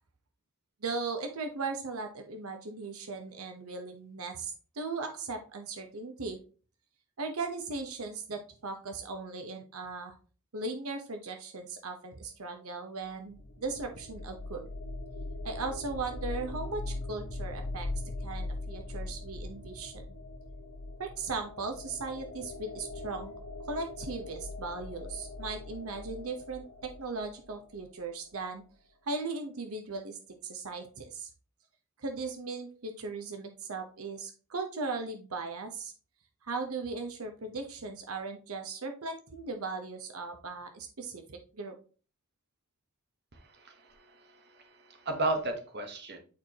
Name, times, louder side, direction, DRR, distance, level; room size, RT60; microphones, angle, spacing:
voice 1, 0.8-6.4 7.2-10.1 10.5-14.6 15.4-17.9 18.2-20.0 21.0-23.3 23.7-28.6 29.0-31.3 32.0-35.9 36.4-41.8, right 3 dB, 80° right, 5 dB, 0.9 m, -38 dB
sound 1, 13.1-27.9, left 2 dB, 65° left, 1.1 m, -41 dB
voice 2, 43.3-46.2, right 2 dB, 50° right, 5 dB, 1.2 m, -35 dB
8.6 x 4.6 x 2.9 m, 0.37 s
head